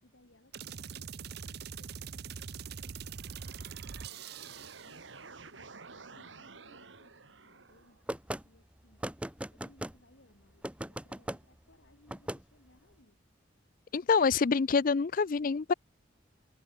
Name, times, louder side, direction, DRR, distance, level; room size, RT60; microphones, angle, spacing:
voice 1, 0.0-3.3 3.7-8.2 8.4-9.0 9.5-13.2, left 1 dB, 80° left, 5.2 m, -65 dB
sound 1, 0.5-5.0, right 6 dB, 60° right, 0.6 m, -43 dB
sound 2, 3.1-8.0, right 4 dB, 85° right, 1.9 m, -52 dB
sound 3, 8.1-8.4 9.0-10.0 10.6-11.4 12.1-12.4, right 1 dB, 5° right, 1.3 m, -37 dB
voice 2, 13.9-15.7, left 5 dB, 50° left, 0.5 m, -26 dB
open air
head